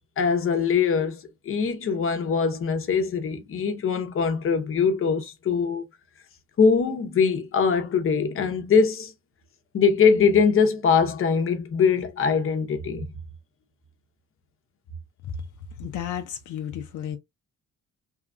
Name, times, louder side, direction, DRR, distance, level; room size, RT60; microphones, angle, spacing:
voice 1, 0.2-5.9 6.6-9.1 9.7-13.1, left 5 dB, 45° left, 0.8 m, -22 dB
voice 2, 15.8-17.2, left 9 dB, 80° left, 0.6 m, -32 dB
2.9 x 2.4 x 2.4 m
cardioid pair, 90°, 30 cm